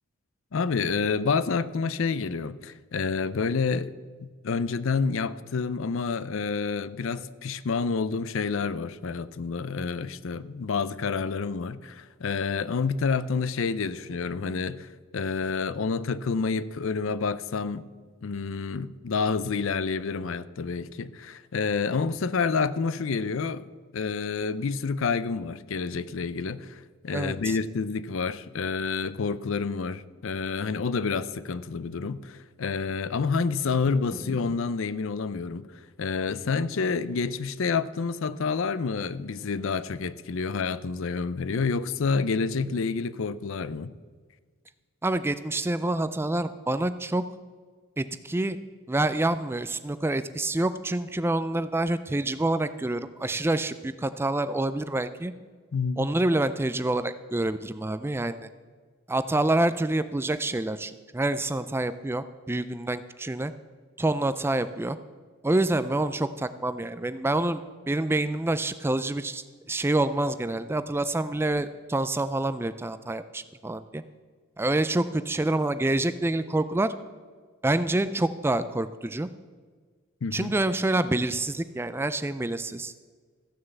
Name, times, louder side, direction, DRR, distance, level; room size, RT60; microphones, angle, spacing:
voice 1, 0.5-3.9 4.2-17.9 18.2-23.7 23.9-35.7 36.0-43.9 55.7-56.1 80.2-80.5, left 5 dB, 60° left, 0.5 m, -28 dB
voice 2, 27.1-27.6 45.0-47.2 48.0-48.6 48.9-55.3 56.0-58.4 59.1-63.5 64.0-65.0 65.4-67.6 67.9-74.0 74.6-76.9 77.6-79.3 80.3-82.9, right 2 dB, 10° right, 0.3 m, -27 dB
14.5 x 6.5 x 8.0 m
head